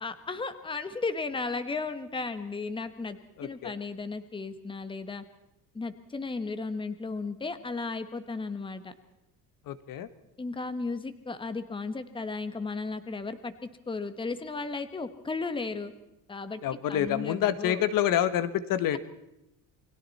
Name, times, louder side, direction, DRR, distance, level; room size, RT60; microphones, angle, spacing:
voice 1, 0.0-5.2 5.7-8.9 10.4-15.9 16.3-16.6 16.9-17.9, left 3 dB, 15° left, 11 dB, 1.2 m, -35 dB
voice 2, 3.4-3.7 9.7-10.1 16.6-19.0, left 11 dB, 70° left, 13 dB, 1.3 m, -27 dB
29.0 x 21.0 x 4.2 m, 0.87 s
cardioid pair, 155°, 35 cm